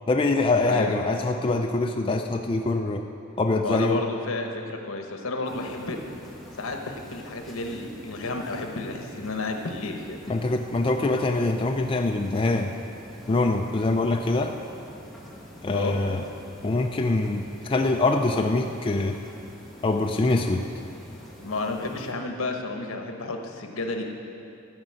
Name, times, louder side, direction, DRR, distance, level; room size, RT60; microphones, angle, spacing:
voice 1, 0.1-3.0 3.4-4.0 10.3-12.7 13.3-14.5 15.6-16.3 16.6-19.2 19.8-20.6, left 2 dB, 25° left, 3 dB, 0.4 m, -24 dB
voice 2, 0.7-1.0 3.6-6.0 6.6-10.2 15.7-16.0 21.4-24.0, left 3 dB, 75° left, 3 dB, 1.1 m, -31 dB
sound 1, 5.4-22.1, equal, ahead, 1.2 m, -46 dB
13.5 x 5.1 x 7.5 m, 2.7 s
head